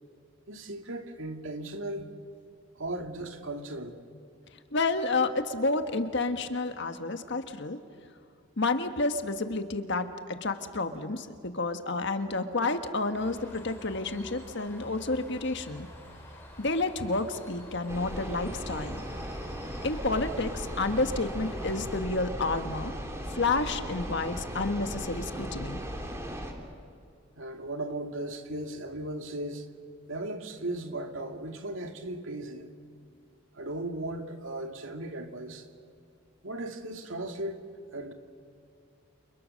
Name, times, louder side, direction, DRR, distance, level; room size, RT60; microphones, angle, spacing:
voice 1, 0.5-2.1 2.8-4.0 27.4-29.7 30.1-32.7 33.5-35.7 36.4-37.6 37.9-38.1, right 1 dB, 70° right, 2.3 m, -37 dB
voice 2, 4.7-7.8 8.6-15.9 16.6-19.0 19.8-22.9 23.3-25.8, left 3 dB, 60° left, 1.5 m, -30 dB
Bird, 13.1-21.9, left 1 dB, 10° left, 5.3 m, -48 dB
sound 1, 17.9-26.5, equal, 15° right, 3.0 m, -37 dB
29.5 x 27.5 x 6.6 m
head